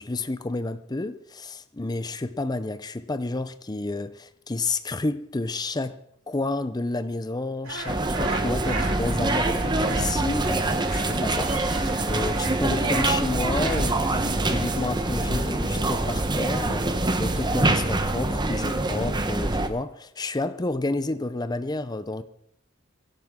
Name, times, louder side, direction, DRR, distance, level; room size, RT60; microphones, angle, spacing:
voice 1, 0.0-22.2, left 2 dB, 20° left, 0.6 m, -30 dB
sound 1, 7.6-15.7, right 4 dB, 85° right, 3.5 m, -37 dB
sound 2, 7.9-19.7, right 2 dB, 20° right, 1.0 m, -25 dB
23.0 x 12.0 x 3.7 m
head